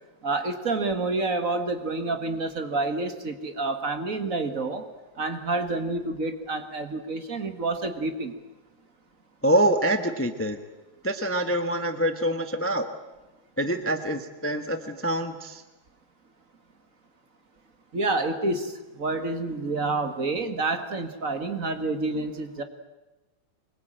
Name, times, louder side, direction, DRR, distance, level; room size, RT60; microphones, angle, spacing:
voice 1, 0.2-4.9 5.2-8.3 17.9-22.6, right 3 dB, 45° right, 7 dB, 2.1 m, -28 dB
voice 2, 9.4-10.6 11.0-12.9 13.6-15.6, right 1 dB, 10° left, 7 dB, 0.9 m, -25 dB
24.5 x 22.0 x 9.0 m, 1.1 s
omnidirectional pair, 2.2 m